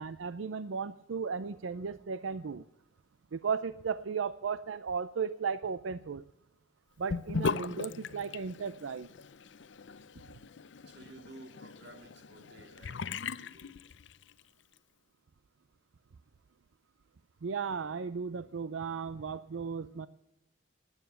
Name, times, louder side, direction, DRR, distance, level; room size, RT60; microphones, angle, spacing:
voice 1, 0.0-2.6 3.3-6.2 7.0-9.1 17.4-20.1, right 5 dB, 90° right, 14 dB, 0.5 m, -35 dB
Sink (filling or washing) / Bathtub (filling or washing), 7.1-14.4, left 5 dB, 65° left, 0.5 m, -39 dB
voice 2, 10.8-13.8, right 2 dB, 60° right, 5 dB, 2.5 m, -54 dB
18.0 x 9.8 x 6.9 m, 0.88 s
head